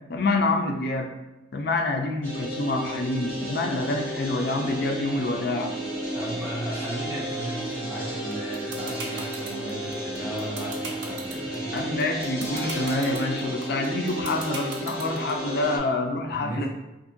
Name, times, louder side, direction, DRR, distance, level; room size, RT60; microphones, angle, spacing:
voice 1, 0.1-1.1 1.5-5.7 11.7-16.7, left 2 dB, 55° left, 3 dB, 0.4 m, -27 dB
sound 1, 2.2-15.8, right 1 dB, 40° left, 1.1 m, -33 dB
voice 2, 6.1-11.8 16.3-16.7, right 1 dB, 15° right, -6 dB, 0.6 m, -35 dB
sound 2, 8.3-15.3, right 4 dB, 70° right, 0.5 m, -36 dB
2.7 x 2.6 x 2.6 m, 0.99 s
head